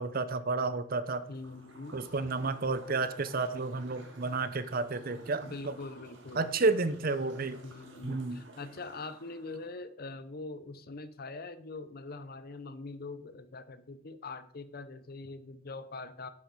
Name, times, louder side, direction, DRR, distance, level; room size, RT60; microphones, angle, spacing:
voice 1, 0.0-1.2 1.9-5.7 6.3-7.6 8.0-8.4, right 3 dB, 45° right, 13 dB, 0.7 m, -31 dB
sound 1, 1.1-9.8, right 2 dB, 65° right, 2.0 m, -53 dB
voice 2, 1.3-2.1 5.4-6.5 7.6-16.3, left 3 dB, 50° left, 13 dB, 0.7 m, -43 dB
11.0 x 7.7 x 4.7 m, 0.63 s
head